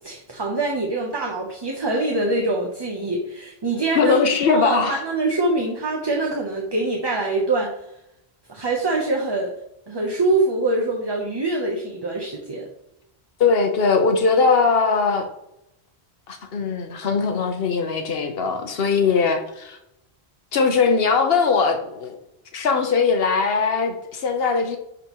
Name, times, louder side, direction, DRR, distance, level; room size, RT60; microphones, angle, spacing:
voice 1, 0.0-4.2 4.5-7.8 8.5-9.5 9.9-12.7, right 2 dB, 25° right, -1 dB, 0.8 m, -24 dB
voice 2, 3.9-5.0 13.4-15.3 16.3-19.8 20.5-22.2 22.5-24.8, left 5 dB, 70° left, 5 dB, 1.1 m, -20 dB
10.5 x 4.0 x 3.0 m, 0.84 s
omnidirectional pair, 1.1 m